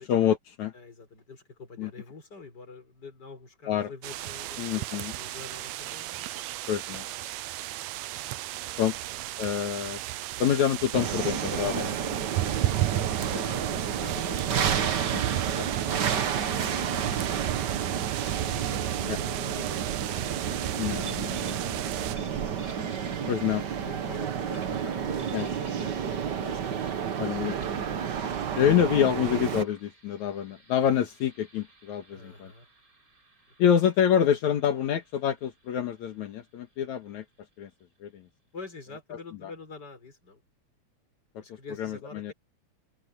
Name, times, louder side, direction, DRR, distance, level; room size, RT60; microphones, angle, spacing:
voice 1, 0.0-0.7 1.8-1.9 3.7-3.9 4.6-5.1 6.7-7.1 8.8-9.0 9.4-10.0 10.4-11.9 19.1-19.2 20.8-21.9 23.3-23.6 25.3-25.5 27.2-27.6 28.5-32.5 33.6-37.2 37.6-37.7 38.0-38.2 39.4-39.5 41.8-42.3, left 9 dB, 75° left, 2.9 m, -27 dB
voice 2, 0.7-6.5 9.0-9.2 10.8-11.1 13.3-22.5 23.2-27.1 32.1-32.7 38.5-40.4 41.4-42.3, left 4 dB, 35° left, 5.5 m, -47 dB
sound 1, 4.0-22.2, right 16 dB, 75° right, 1.9 m, -34 dB
sound 2, 10.9-29.6, right 8 dB, 50° right, 1.4 m, -31 dB
sound 3, 21.0-21.7 22.1-23.6 24.5-26.0 27.2-27.3 27.6-27.8 28.9-38.2, right 4 dB, 25° right, 6.1 m, -54 dB
omnidirectional pair, 3.3 m